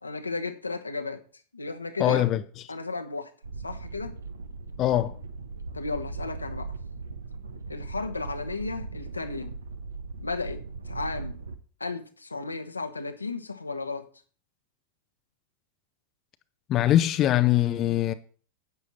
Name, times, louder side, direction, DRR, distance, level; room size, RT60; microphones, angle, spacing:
voice 1, 0.0-1.2 1.5-2.3 2.7-3.3 3.6-4.2 5.7-6.7 7.7-9.5 10.2-11.4 11.8-14.1, left 3 dB, 80° left, 1.1 m, -34 dB
voice 2, 2.0-2.4 4.8-5.2 16.7-18.1, left 13 dB, 35° left, 0.6 m, -22 dB
sound 1, 3.4-11.5, right 3 dB, 70° right, 1.0 m, -38 dB
11.0 x 8.4 x 4.3 m
figure-of-eight pair, 90°, 0 cm